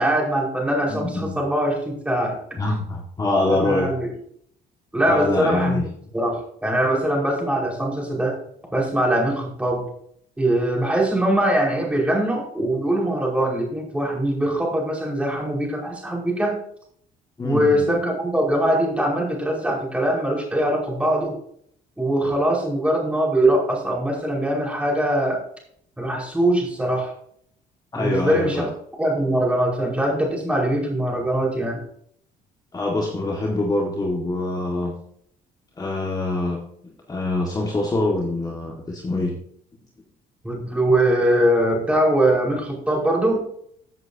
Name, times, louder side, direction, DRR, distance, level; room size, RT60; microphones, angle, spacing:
voice 1, 0.0-2.4 3.5-4.1 4.9-5.9 6.1-8.4 8.7-9.8 10.4-16.6 17.4-21.3 22.0-25.4 26.0-27.1 27.9-28.7 29.0-31.8 40.4-43.5, right 1 dB, 5° right, -2 dB, 5.2 m, -22 dB
voice 2, 0.9-1.4 2.5-3.9 5.0-5.9 17.4-17.9 27.9-28.7 32.7-34.9 35.8-36.6 37.1-39.4, left 2 dB, 20° left, -1 dB, 2.0 m, -24 dB
15.5 x 7.9 x 2.9 m, 0.66 s
cardioid pair, 110°, 17 cm